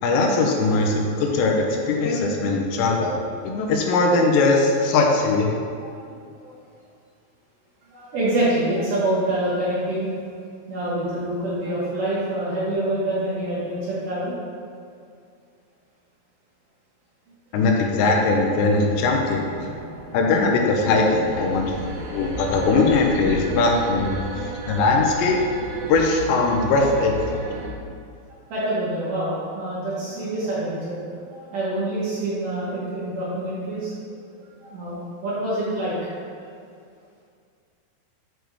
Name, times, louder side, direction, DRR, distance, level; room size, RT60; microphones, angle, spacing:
voice 1, 0.0-3.1 3.4-5.5 17.5-19.4 20.1-21.7 22.1-25.4 25.9-27.3, left 3 dB, 85° left, 1 dB, 2.9 m, -20 dB
voice 2, 5.8-6.1 6.4-6.5 7.9-10.1 10.7-14.4 19.6-19.8 21.7-21.8 23.5-23.6 28.5-31.0 31.3-34.2 34.6-36.1, right 1 dB, 65° right, -9 dB, 2.3 m, -26 dB
sound 1, 18.8-27.7, right 1 dB, 80° right, 2.1 m, -34 dB
7.6 x 3.4 x 4.7 m, 2.3 s
omnidirectional pair, 5.0 m